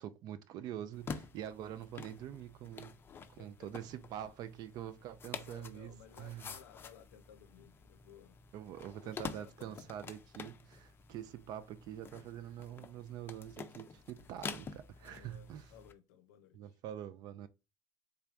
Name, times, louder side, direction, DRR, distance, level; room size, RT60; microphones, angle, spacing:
voice 1, 0.0-2.9 3.4-5.9 6.2-6.5 8.5-15.7 16.5-17.5, right 11 dB, 55° right, 0.4 m, -45 dB
sound 1, 0.9-15.9, left 5 dB, 25° left, 0.5 m, -49 dB
voice 2, 3.1-3.7 5.2-8.4 9.0-9.9 15.0-16.8, left 9 dB, 90° left, 0.6 m, -59 dB
3.4 x 3.3 x 2.4 m
supercardioid pair, 105°, 8 cm